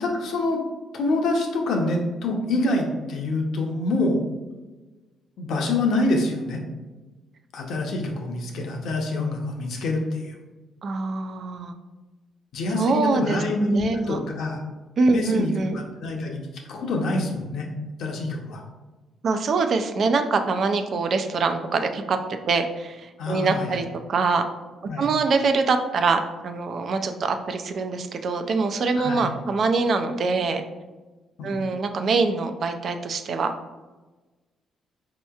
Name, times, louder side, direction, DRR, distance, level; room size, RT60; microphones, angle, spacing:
voice 1, 0.0-0.6 0.9-4.2 5.4-6.6 7.5-10.3 12.5-14.6 15.1-17.7 18.0-18.6 23.2-23.8 24.9-25.1 29.0-29.3 31.4-31.6, left 2 dB, 75° left, 1 dB, 0.7 m, -26 dB
voice 2, 10.8-11.7 12.8-14.2 15.0-15.8 19.2-22.2 22.5-24.4 25.0-30.6 31.4-33.5, right 4 dB, 55° right, 6 dB, 0.4 m, -24 dB
4.2 x 2.8 x 2.3 m, 1.2 s
cardioid pair, 90°, 0 cm